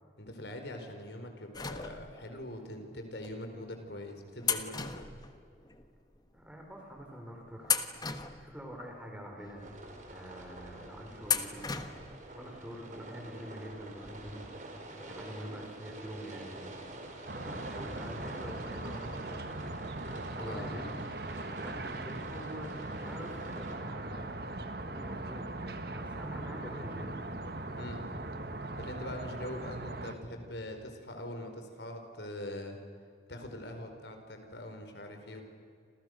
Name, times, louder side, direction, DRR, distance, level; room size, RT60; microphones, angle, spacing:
voice 1, 0.2-5.1 20.3-20.7 27.8-28.0 28.8-32.8 33.3-35.4, left 1 dB, 75° left, 5 dB, 4.8 m, -43 dB
sound 1, 1.5-2.4 3.2-3.3 4.4-5.9 6.1-6.2 7.0-7.2 7.6-8.9 9.5-9.6 11.2-12.2 12.5-12.6 13.8-13.9 14.2-14.3, left 6 dB, 20° left, 1.4 m, -35 dB
voice 2, 6.3-7.8 8.4-9.7 10.1-11.7 12.3-14.4 15.0-16.8 17.3-19.6 20.4-24.5 24.8-27.1, equal, 5° right, 1 dB, 4.7 m, -45 dB
sound 2, 9.6-23.8, right 1 dB, 45° right, 4.8 m, -47 dB
sound 3, 17.3-30.1, right 2 dB, 60° right, 1.7 m, -40 dB
30.0 x 27.5 x 6.7 m, 2.4 s
head